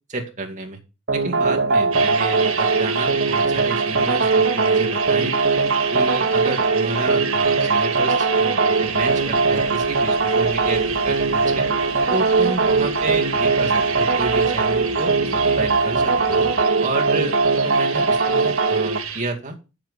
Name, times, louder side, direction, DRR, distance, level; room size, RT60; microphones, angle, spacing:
voice 1, 0.1-0.8 1.1-5.3 5.9-11.7 12.1-16.5 16.8-17.4 17.6-19.6, right 2 dB, 35° right, 1 dB, 2.2 m, -30 dB
sound 1, 1.1-19.0, right 4 dB, 55° right, 1.3 m, -20 dB
sound 2, 1.9-19.2, right 8 dB, 85° right, 1.7 m, -31 dB
sound 3, 8.8-16.6, equal, 85° left, 2.2 m, -40 dB
8.2 x 7.4 x 5.4 m, 0.30 s
head